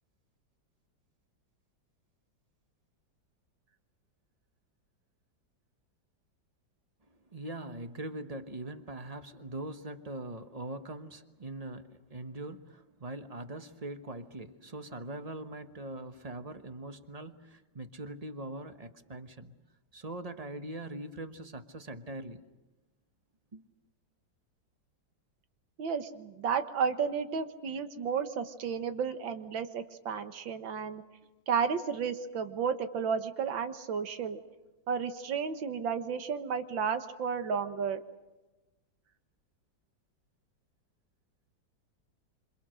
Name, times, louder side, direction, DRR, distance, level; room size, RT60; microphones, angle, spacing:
voice 1, 7.1-19.5 19.9-22.4 23.5-23.7, right 2 dB, 25° right, 8 dB, 1.0 m, -42 dB
voice 2, 25.8-31.0 31.5-34.4 34.9-38.0, right 6 dB, 85° right, 9 dB, 2.1 m, -32 dB
27.0 x 26.5 x 6.5 m, 1.1 s
omnidirectional pair, 2.0 m